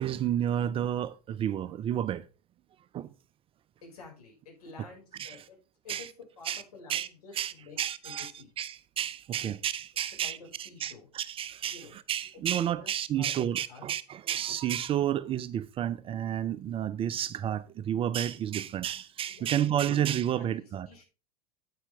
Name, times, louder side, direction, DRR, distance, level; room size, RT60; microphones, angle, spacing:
voice 1, 0.0-2.3 2.9-3.1 5.2-5.4 5.9-6.1 6.5-6.6 6.9-7.1 7.4-8.3 8.6-11.8 12.1-20.9, right 10 dB, 25° right, 0.5 m, -31 dB
voice 2, 3.8-5.6 5.8-8.5 10.1-11.1 11.7-11.9 12.5-13.8 19.3-19.7 20.1-21.1, left 4 dB, 70° left, 5.7 m, -50 dB
9.2 x 8.5 x 3.5 m
figure-of-eight pair, 85°, 20 cm